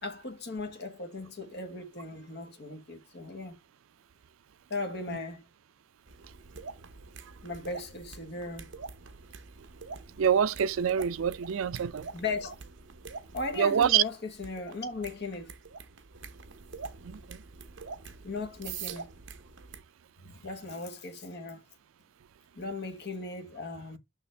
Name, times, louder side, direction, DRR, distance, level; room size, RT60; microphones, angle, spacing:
voice 1, 0.0-3.6 4.7-5.4 7.4-8.7 12.1-12.5 13.3-15.6 18.2-19.1 20.2-21.6 22.6-24.0, left 3 dB, 50° left, 1.3 m, -37 dB
sound 1, 6.1-19.8, right 5 dB, 60° right, 0.9 m, -46 dB
voice 2, 10.2-12.1 13.6-14.0 17.0-17.4, right 8 dB, 75° right, 0.4 m, -26 dB
6.8 x 5.8 x 3.4 m
head